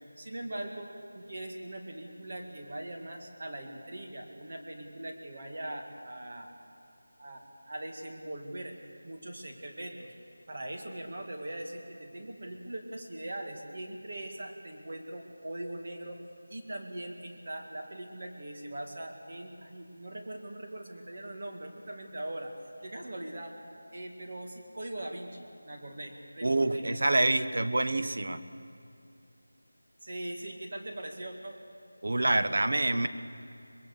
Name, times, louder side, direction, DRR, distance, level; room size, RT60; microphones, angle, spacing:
voice 1, 0.2-6.6 7.2-8.8 9.0-10.1 10.5-16.2 16.5-22.5 22.8-23.6 23.9-26.8 30.0-31.6, right 1 dB, 35° right, 2 dB, 2.2 m, -41 dB
voice 2, 26.4-28.4 32.0-33.1, right 2 dB, 55° right, 10 dB, 1.1 m, -26 dB
24.0 x 21.0 x 6.8 m, 2.6 s
figure-of-eight pair, 175°, 0 cm